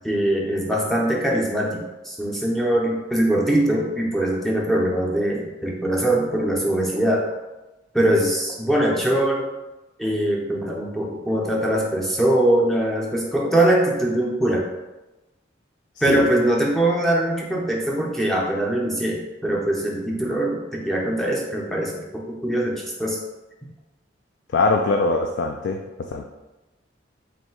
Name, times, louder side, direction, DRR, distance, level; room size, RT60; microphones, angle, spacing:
voice 1, 0.0-7.3 7.9-9.4 10.0-14.7 16.0-23.2, right 1 dB, ahead, -2 dB, 0.5 m, -22 dB
voice 2, 24.5-25.8 26.1-26.3, left 3 dB, 70° left, 3 dB, 0.3 m, -22 dB
3.1 x 2.7 x 4.4 m, 1.1 s
head